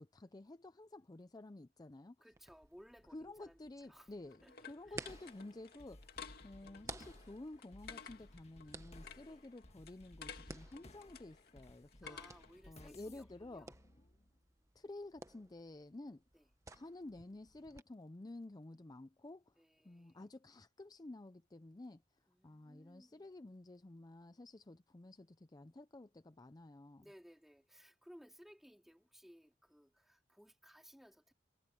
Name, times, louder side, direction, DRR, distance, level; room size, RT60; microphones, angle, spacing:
voice 1, 0.0-2.2 3.1-12.2 12.7-13.7 14.7-16.2 16.7-19.5 19.8-22.0 22.4-27.0, left 2 dB, 20° left, 0.5 m, -52 dB
voice 2, 2.2-4.1 4.4-5.1 9.2-9.5 12.0-13.8 16.3-16.5 19.6-20.2 22.3-23.4 27.0-31.3, equal, ahead, 4.1 m, -61 dB
sound 1, 2.3-17.8, right 2 dB, 20° right, 1.3 m, -56 dB
sound 2, 3.6-12.6, left 6 dB, 60° left, 2.5 m, -55 dB
sound 3, 5.1-14.5, left 1 dB, 40° left, 1.6 m, -59 dB
head